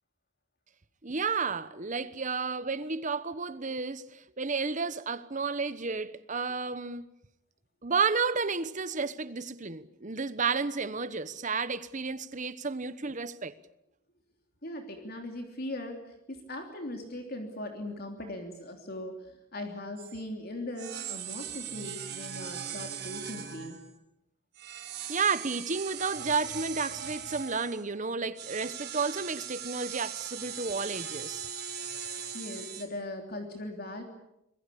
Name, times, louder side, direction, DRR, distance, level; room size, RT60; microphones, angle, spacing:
voice 1, 1.0-7.1 7.8-13.5 25.1-31.5, right 4 dB, 40° right, 1.1 m, -32 dB
voice 2, 14.6-23.8 31.9-32.1 32.3-34.0, left 1 dB, 50° left, 3.2 m, -39 dB
sound 1, 20.0-20.2 20.8-23.9 24.5-27.8 28.4-32.8, right 8 dB, 55° right, 3.5 m, -39 dB
26.0 x 21.0 x 8.5 m
head